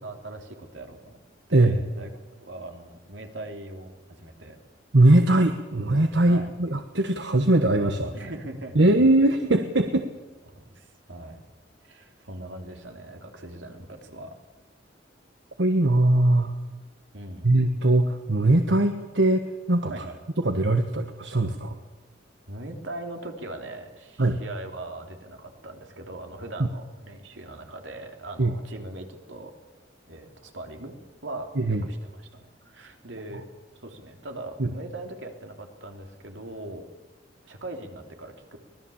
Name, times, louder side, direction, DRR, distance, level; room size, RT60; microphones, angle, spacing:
voice 1, 0.0-1.2 1.5-2.1 2.4-4.6 6.3-6.5 8.1-8.9 10.5-11.4 11.8-14.3 17.1-17.5 19.9-20.2 22.5-29.5 30.1-30.9 31.2-33.4 33.7-36.9 37.4-38.6, right 2 dB, 85° right, 3 dB, 3.4 m, -40 dB
voice 2, 4.9-8.1 8.7-10.0 15.6-16.5 17.4-20.0 20.4-21.7 24.2-24.4 28.4-28.5 31.6-31.8 34.6-34.7, right 1 dB, 70° right, 7 dB, 1.4 m, -21 dB
24.5 x 19.5 x 7.2 m, 1.2 s
head